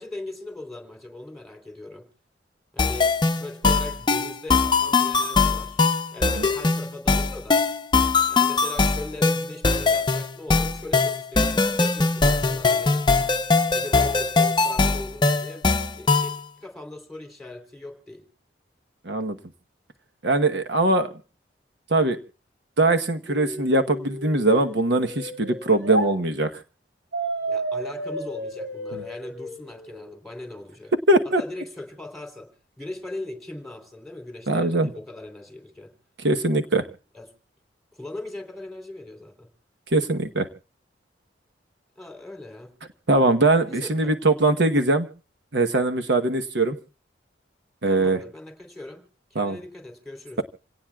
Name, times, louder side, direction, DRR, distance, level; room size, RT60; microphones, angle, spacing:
voice 1, 0.0-2.0 2.7-5.8 6.1-7.6 8.3-13.0 13.7-15.7 15.9-16.3 16.6-18.2 27.5-30.9 31.2-32.5 32.8-35.9 37.1-37.3 37.9-39.5 41.9-42.7 43.6-44.1 47.8-50.4, left 2 dB, ahead, 5 dB, 3.4 m, -39 dB
sound 1, 2.8-16.4, left 4 dB, 25° left, 0.7 m, -21 dB
voice 2, 19.0-19.4 20.2-21.1 21.9-22.2 22.8-26.6 31.1-31.4 34.5-34.9 36.2-36.8 39.9-40.5 43.1-45.1 45.5-46.8 47.8-48.2 49.3-49.6, right 2 dB, 70° right, 8 dB, 1.1 m, -21 dB
sound 2, 23.3-26.1 27.1-30.1, right 1 dB, 90° right, 6.7 m, -32 dB
27.5 x 18.0 x 2.3 m, 0.36 s
head